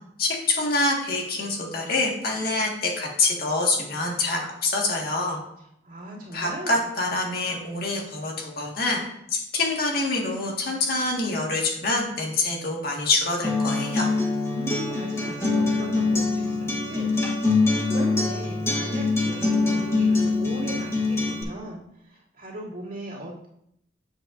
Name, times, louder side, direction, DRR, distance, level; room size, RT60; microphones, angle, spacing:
voice 1, 0.2-5.4 6.3-9.0 9.3-14.1, left 2 dB, 55° left, -1 dB, 1.7 m, -26 dB
voice 2, 5.8-6.9 14.4-17.1 17.6-23.5, right 1 dB, 50° right, -7 dB, 2.7 m, -38 dB
Acoustic guitar, 13.4-21.4, left 3 dB, 15° left, 1.1 m, -24 dB
8.4 x 7.4 x 2.6 m, 0.77 s
head